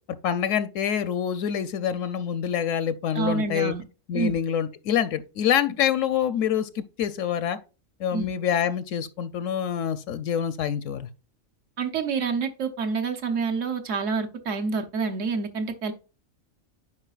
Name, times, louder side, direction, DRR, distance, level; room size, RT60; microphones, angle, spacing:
voice 1, 0.2-3.7 4.1-7.6 8.0-11.1, left 9 dB, 75° left, 0.9 m, -26 dB
voice 2, 3.1-3.8 4.1-4.4 8.1-8.3 11.8-15.9, right 5 dB, 70° right, 1.2 m, -27 dB
9.7 x 4.9 x 2.3 m
omnidirectional pair, 1.4 m